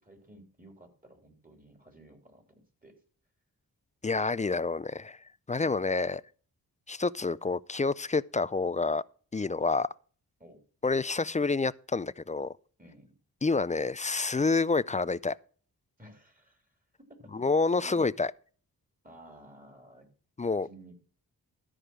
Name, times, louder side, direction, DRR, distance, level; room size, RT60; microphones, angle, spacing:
voice 1, 0.0-3.0 5.6-5.9 10.4-10.6 12.8-13.1 16.0-17.4 17.8-18.1 19.0-20.1 20.6-21.0, right 1 dB, 20° right, 3.4 m, -54 dB
voice 2, 4.0-5.2 5.5-6.2 6.9-9.0 9.3-9.9 10.8-12.5 13.4-15.4 17.3-18.3 20.4-20.7, left 3 dB, 20° left, 0.4 m, -28 dB
13.0 x 5.0 x 6.0 m
cardioid pair, 60°, 39 cm